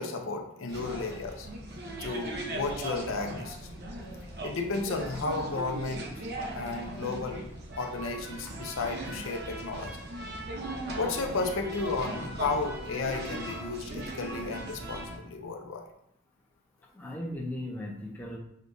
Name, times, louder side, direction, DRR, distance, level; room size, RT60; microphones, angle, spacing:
voice 1, 0.0-1.5 2.0-3.6 4.4-6.1 6.5-7.5 7.8-10.0 10.9-15.9, left 3 dB, 75° left, 3 dB, 0.5 m, -33 dB
sound 1, 0.7-15.2, right 1 dB, 55° right, 0.7 m, -39 dB
voice 2, 16.9-18.4, left 1 dB, 10° left, -3 dB, 0.6 m, -37 dB
6.5 x 2.3 x 2.6 m, 0.78 s
head